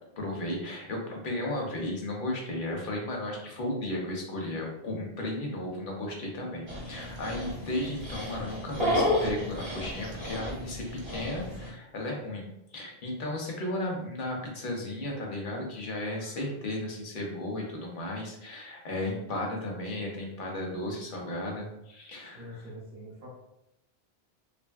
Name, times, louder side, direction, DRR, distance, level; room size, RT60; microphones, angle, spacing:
voice 1, 0.2-12.4 12.7-22.7, left 1 dB, 60° left, 0 dB, 0.8 m, -34 dB
Dog, 6.7-11.7, left 1 dB, 35° right, 0.6 m, -32 dB
voice 2, 22.3-23.3, equal, 60° right, -6 dB, 0.9 m, -44 dB
2.9 x 2.5 x 2.3 m, 0.84 s
omnidirectional pair, 1.0 m